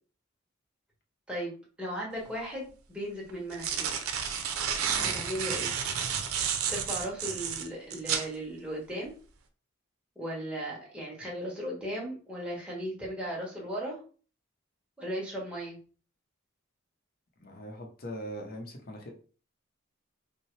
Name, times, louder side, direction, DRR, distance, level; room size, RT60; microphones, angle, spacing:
voice 1, 1.3-3.9 5.0-5.8 6.7-9.1 10.1-14.0 15.0-15.8, equal, 5° right, -5 dB, 1.2 m, -36 dB
sound 1, 2.2-2.3 3.3-8.3, right 7 dB, 90° right, 0.6 m, -31 dB
voice 2, 4.8-5.3 17.4-19.1, equal, 45° left, 1 dB, 0.8 m, -42 dB
5.5 x 2.1 x 3.2 m, 0.39 s
head